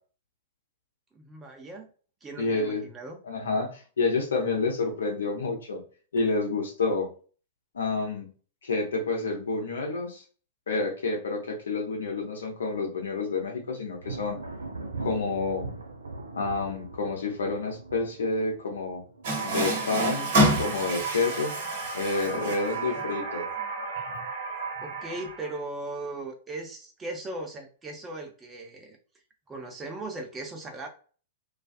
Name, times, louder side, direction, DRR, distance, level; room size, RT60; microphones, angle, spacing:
voice 1, 1.1-1.9 2.2-3.2 6.2-6.3 24.8-29.0 29.5-30.9, right 2 dB, 15° right, 2 dB, 0.7 m, -38 dB
voice 2, 2.4-2.8 3.2-5.8 6.1-7.1 7.7-8.3 8.6-10.2 10.7-14.4 15.0-15.7 16.3-19.0 19.4-21.6 21.9-23.5, left 3 dB, 70° left, 1 dB, 0.7 m, -29 dB
Thunder, 14.0-20.5 20.8-21.4 21.8-22.7, right 3 dB, 75° right, 0.4 m, -40 dB
Water tap faucet, 19.2-25.6, right 1 dB, 55° right, 1.1 m, -29 dB
2.4 x 2.4 x 2.3 m, 0.40 s
figure-of-eight pair, 100°, 0 cm